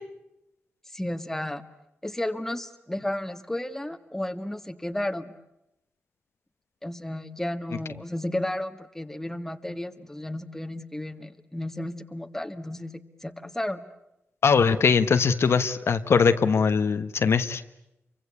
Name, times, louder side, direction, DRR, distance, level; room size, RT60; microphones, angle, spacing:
voice 1, 0.9-1.6 2.0-5.3 6.8-13.8, left 1 dB, 10° left, 8 dB, 1.7 m, -33 dB
voice 2, 14.4-17.6, left 5 dB, 70° left, 9 dB, 1.2 m, -21 dB
29.0 x 24.5 x 8.4 m, 0.87 s
wide cardioid pair, 90°, 5 cm